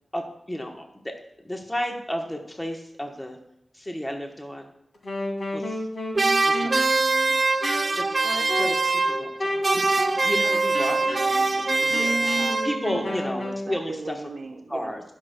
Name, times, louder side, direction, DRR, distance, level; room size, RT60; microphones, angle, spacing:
voice 1, 0.1-1.1 1.4-3.4 3.7-4.7 5.5-5.8 6.4-7.0 8.0-11.8 12.6-14.2 14.7-15.0, equal, 15° left, 2 dB, 1.1 m, -33 dB
Wind instrument woodwind instrument, 4.9-13.7, left 1 dB, 70° left, 2.0 m, -32 dB
sound 1, 6.1-9.4 9.6-13.0, right 3 dB, 45° right, 0.4 m, -23 dB
voice 2, 11.8-15.0, right 3 dB, 90° right, -2 dB, 0.9 m, -38 dB
19.0 x 6.4 x 2.2 m, 0.84 s
wide cardioid pair, 80°, 0 cm